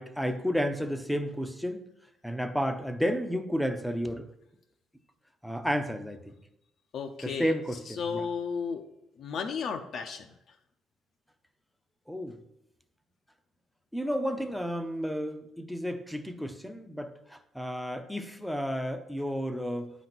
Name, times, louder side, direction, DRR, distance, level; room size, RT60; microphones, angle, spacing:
voice 1, 0.0-1.8 2.2-4.3 5.4-6.3 7.2-8.2 12.1-12.4 13.9-19.9, equal, ahead, 8 dB, 0.6 m, -32 dB
voice 2, 6.9-7.5 8.0-8.8 9.2-10.3, left 6 dB, 50° left, 5 dB, 0.6 m, -33 dB
9.7 x 4.1 x 6.0 m, 0.82 s
cardioid pair, 170°, 0 cm